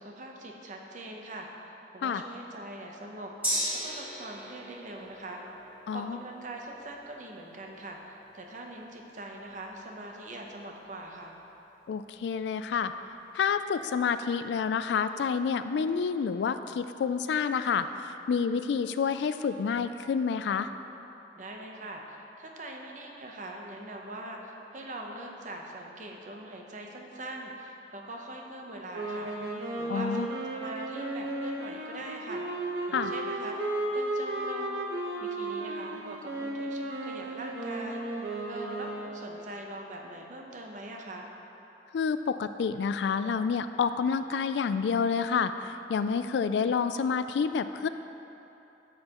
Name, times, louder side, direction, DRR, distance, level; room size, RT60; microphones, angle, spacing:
voice 1, 0.0-3.3 3.8-5.4 5.9-11.4 21.4-29.3 29.8-30.3 30.5-33.6 33.9-34.8 35.2-41.3, right 1 dB, 45° right, 1 dB, 0.8 m, -42 dB
Gong, 3.4-11.2 11.5-11.6, equal, 10° right, 1.9 m, -39 dB
voice 2, 5.9-6.2 11.9-12.9 13.3-20.7 29.9-30.3 32.9-33.1 41.9-47.9, left 6 dB, 70° left, 11 dB, 0.3 m, -28 dB
sound 1, 28.9-39.3, right 2 dB, 75° right, 1.1 m, -34 dB
10.5 x 7.6 x 3.0 m, 3.0 s
head